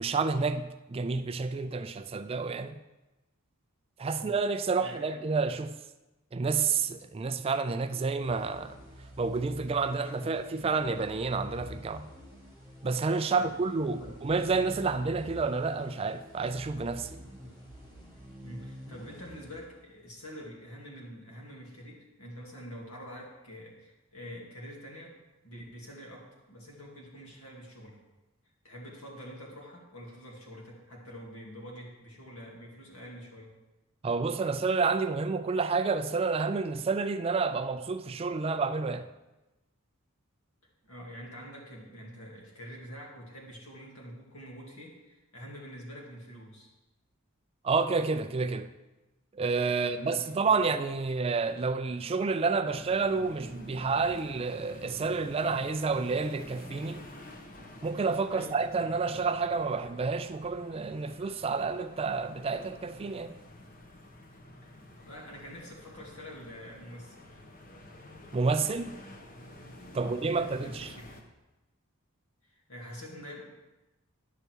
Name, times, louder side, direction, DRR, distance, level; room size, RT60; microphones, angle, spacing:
voice 1, 0.0-2.8 4.0-5.8 6.3-8.8 9.2-12.1 12.8-17.2 34.0-39.1 47.6-48.7 49.3-57.0 57.8-63.4 68.3-68.9 69.9-70.9, right 4 dB, 25° right, 0.3 m, -29 dB
voice 2, 4.8-5.2 10.2-10.3 13.4-13.5 14.0-14.1 18.4-25.2 25.4-28.0 28.6-33.5 40.8-46.7 49.7-50.8 58.3-58.6 64.6-67.4 70.0-71.2 72.5-73.4, equal, 80° left, 2.3 m, -46 dB
sound 1, 8.2-20.1, equal, 20° left, 1.5 m, -48 dB
sound 2, 52.6-71.2, left 1 dB, 40° left, 0.9 m, -50 dB
10.0 x 6.6 x 4.6 m
head